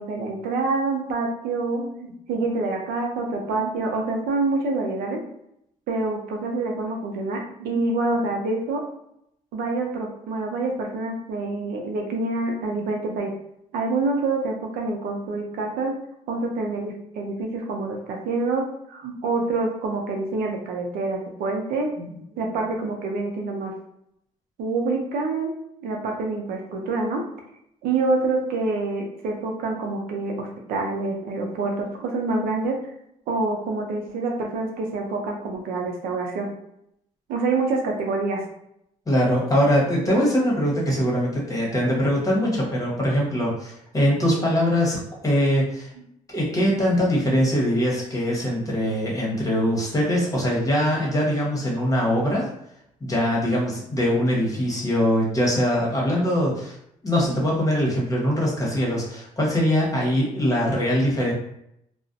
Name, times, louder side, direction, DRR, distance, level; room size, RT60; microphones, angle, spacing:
voice 1, 0.0-5.2 5.9-8.8 9.5-13.3 13.7-15.9 16.3-23.7 24.6-25.5 25.8-27.2 27.8-32.8 33.3-36.5 37.3-38.4, right 3 dB, 80° right, 1 dB, 0.5 m, -26 dB
voice 2, 39.1-45.9 46.3-52.5 53.0-56.8 57.0-61.3, equal, 20° left, -3 dB, 1.0 m, -22 dB
2.4 x 2.1 x 2.5 m, 0.76 s
supercardioid pair, 70°, 15 cm